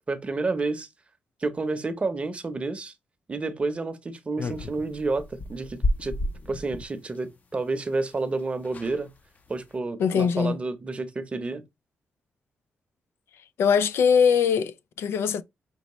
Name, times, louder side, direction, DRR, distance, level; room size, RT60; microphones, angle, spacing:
voice 1, 0.1-0.9 1.4-2.9 3.3-6.2 6.5-9.1 9.5-11.6, right 3 dB, 30° right, 0.7 m, -30 dB
sound 1, 4.4-6.9 8.1-8.2 8.4-8.5 8.6-9.0 9.5-9.7, left 1 dB, 40° left, 0.6 m, -31 dB
voice 2, 10.0-10.6 13.6-15.4, left 6 dB, 80° left, 0.4 m, -22 dB
5.4 x 3.0 x 3.0 m
cardioid pair, 115°, 4 cm